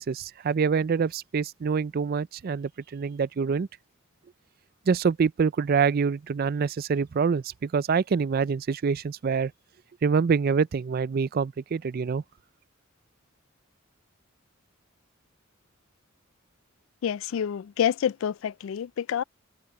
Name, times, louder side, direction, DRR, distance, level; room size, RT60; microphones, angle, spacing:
voice 1, 0.0-3.7 4.9-9.5 10.0-12.2, right 5 dB, 45° right, 0.4 m, -26 dB
voice 2, 17.0-19.2, left 8 dB, 65° left, 0.3 m, -28 dB
head